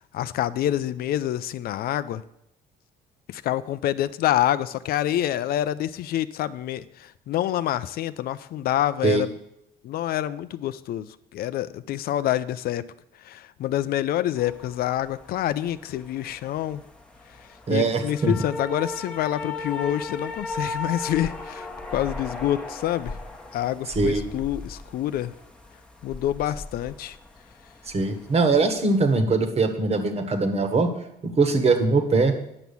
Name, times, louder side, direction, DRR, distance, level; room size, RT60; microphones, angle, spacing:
voice 1, 0.1-2.2 3.3-6.8 7.3-9.3 9.8-11.1 11.3-12.8 13.3-16.8 17.7-23.1 23.5-25.3 26.0-27.2, left 12 dB, 65° left, 14 dB, 0.5 m, -27 dB
sound 1, 14.4-29.2, left 3 dB, 5° left, 1.2 m, -37 dB
voice 2, 17.7-18.3 23.9-24.2 27.9-30.9 31.2-32.3, right 3 dB, 40° right, 7 dB, 1.5 m, -22 dB
9.7 x 6.1 x 7.0 m, 0.80 s
cardioid pair, 110°, 17 cm